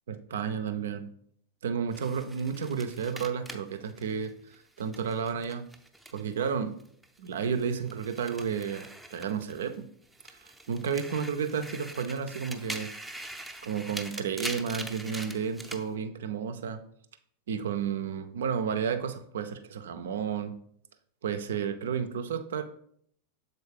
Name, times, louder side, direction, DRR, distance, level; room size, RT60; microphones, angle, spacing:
voice 1, 0.1-1.1 1.6-4.3 4.8-5.7 6.1-6.8 7.2-9.8 10.4-12.9 13.6-16.8 17.5-20.5 21.2-22.6, right 7 dB, 60° right, 9 dB, 0.5 m, -32 dB
sound 1, 1.9-6.5 6.8-9.8 10.1-15.8, right 1 dB, 5° right, 0.6 m, -43 dB
7.1 x 4.2 x 3.3 m, 0.66 s
figure-of-eight pair, 90°, 0 cm